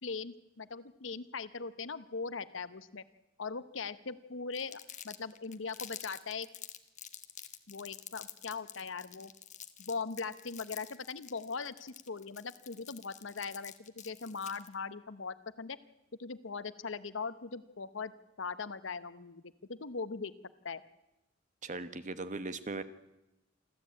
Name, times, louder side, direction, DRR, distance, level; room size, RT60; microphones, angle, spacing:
voice 1, 0.0-3.0 3.4-4.8 5.0-6.5 7.7-9.3 9.8-15.8 16.2-18.1 18.4-20.3 20.6-20.8, left 4 dB, 75° left, 14 dB, 0.9 m, -40 dB
Crumpling crinkling, 4.5-14.7, left 10 dB, 40° left, 1.3 m, -48 dB
voice 2, 21.6-22.8, right 3 dB, 40° right, 12 dB, 1.2 m, -38 dB
27.5 x 13.0 x 8.6 m, 0.95 s
head